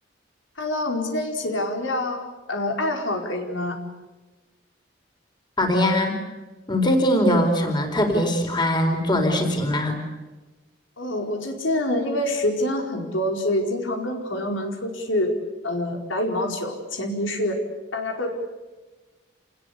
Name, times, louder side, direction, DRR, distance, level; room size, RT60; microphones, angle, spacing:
voice 1, 0.6-3.8 11.0-15.3 15.6-17.6 17.9-18.3, left 1 dB, 90° left, 3 dB, 4.7 m, -26 dB
voice 2, 5.6-6.2 6.7-10.0, left 1 dB, 25° left, 4 dB, 4.5 m, -21 dB
28.0 x 20.5 x 8.4 m, 1.2 s
head